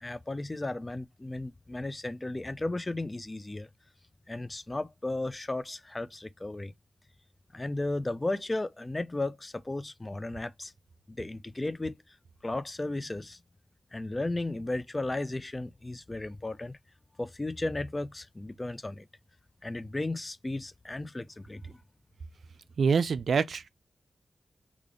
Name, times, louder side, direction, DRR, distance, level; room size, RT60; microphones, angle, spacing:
voice 1, 0.0-3.7 4.3-6.7 7.5-10.7 11.1-12.0 12.4-13.4 13.9-16.8 17.2-19.1 19.6-21.8, left 2 dB, 20° left, 0.3 m, -34 dB
voice 2, 22.8-23.7, right 5 dB, 75° right, 0.4 m, -25 dB
3.3 x 2.4 x 3.6 m
wide cardioid pair, 100°, 0 cm